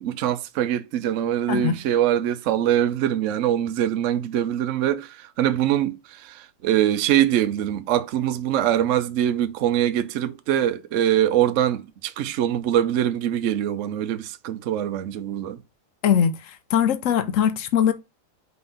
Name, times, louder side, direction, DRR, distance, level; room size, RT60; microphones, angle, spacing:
voice 1, 0.0-15.6, right 11 dB, 65° right, 0.7 m, -23 dB
voice 2, 16.0-17.9, left 8 dB, 65° left, 0.8 m, -21 dB
5.5 x 3.5 x 5.4 m
omnidirectional pair, 2.0 m